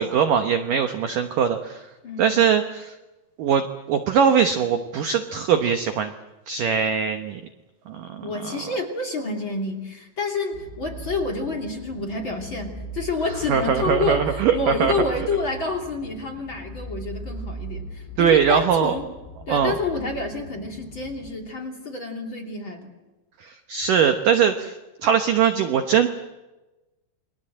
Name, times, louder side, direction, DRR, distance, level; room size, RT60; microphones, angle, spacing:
voice 1, 0.0-1.8 2.2-2.9 3.4-6.1 6.5-7.4 7.9-8.4 13.5-14.9 18.2-18.9 19.5-19.8 23.4-26.1, right 7 dB, 75° right, 7 dB, 2.0 m, -21 dB
voice 2, 2.0-2.4 8.2-19.0 19.5-22.9, left 3 dB, 30° left, 5 dB, 2.9 m, -29 dB
sound 1, 10.5-21.3, right 2 dB, 65° left, 6.2 m, -38 dB
29.0 x 23.0 x 7.7 m, 1.1 s
omnidirectional pair, 5.4 m